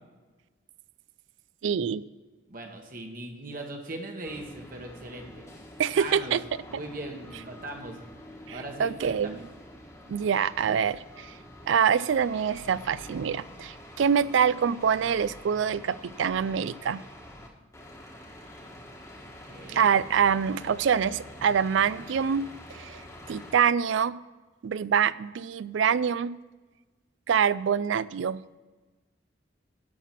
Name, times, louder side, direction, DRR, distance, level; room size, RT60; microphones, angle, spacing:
voice 1, 1.6-2.0 5.8-6.4 8.5-9.4 10.1-11.3 11.7-17.0 19.7-22.4 22.7-23.0 23.3-24.2 24.6-26.3 27.3-28.4, right 7 dB, 75° right, 19 dB, 0.3 m, -25 dB
voice 2, 2.5-5.5 6.0-6.4 6.7-8.0 8.5-9.4 19.4-20.0, right 2 dB, 45° right, 2 dB, 1.3 m, -39 dB
sound 1, 4.2-11.7 12.0-17.5 17.7-23.6, left 1 dB, 15° left, 1.3 m, -47 dB
11.5 x 5.9 x 5.9 m, 1.3 s
head